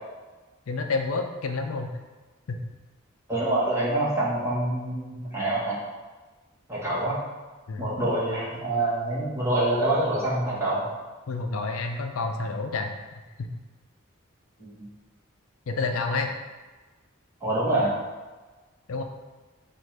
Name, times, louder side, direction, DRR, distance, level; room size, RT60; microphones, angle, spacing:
voice 1, 0.7-1.9 2.5-2.6 7.7-7.9 11.3-13.0 13.4-13.5 15.7-16.3 18.9-19.0, left 3 dB, 90° left, 5 dB, 0.5 m, -29 dB
voice 2, 3.3-5.8 6.7-7.2 7.8-10.8 14.7-14.8 17.4-17.9, right 1 dB, 10° right, -8 dB, 1.3 m, -26 dB
6.2 x 2.5 x 3.3 m, 1.3 s
head